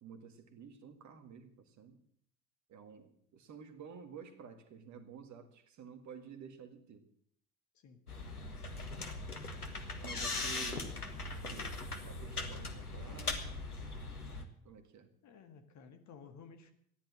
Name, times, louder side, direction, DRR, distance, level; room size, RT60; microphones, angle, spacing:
voice 1, 0.0-2.0 2.7-7.1 10.0-11.0 11.3-13.5 14.6-15.1, right 6 dB, 40° right, 8 dB, 2.0 m, -51 dB
sound 1, 8.1-14.4, left 3 dB, 85° left, 1.4 m, -40 dB
voice 2, 15.2-16.7, left 5 dB, 40° left, 7 dB, 1.9 m, -55 dB
14.0 x 10.5 x 7.6 m, 0.66 s
figure-of-eight pair, 65°, 44 cm